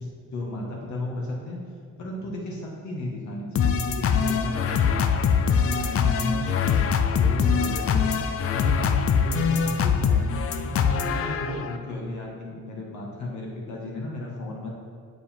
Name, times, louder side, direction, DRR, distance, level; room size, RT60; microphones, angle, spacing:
voice 1, 0.0-1.6 2.0-5.1 5.4-6.8 7.1-8.2 8.5-10.4 10.6-14.7, left 1 dB, 70° left, -2 dB, 1.7 m, -34 dB
sound 1, 3.6-11.8, left 6 dB, 50° left, 0.5 m, -23 dB
7.2 x 5.1 x 4.4 m, 2.4 s
cardioid pair, 90°, 30 cm